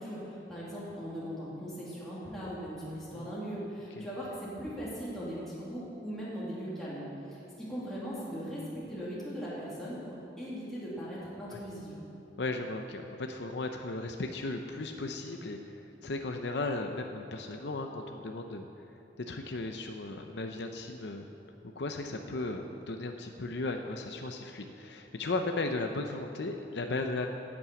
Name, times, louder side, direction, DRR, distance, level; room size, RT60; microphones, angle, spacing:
voice 1, 0.0-12.0, equal, ahead, -9 dB, 2.6 m, -39 dB
voice 2, 12.4-18.9 19.2-21.3 21.8-27.3, left 2 dB, 65° left, 4 dB, 0.7 m, -36 dB
11.0 x 8.7 x 8.3 m, 2.9 s
head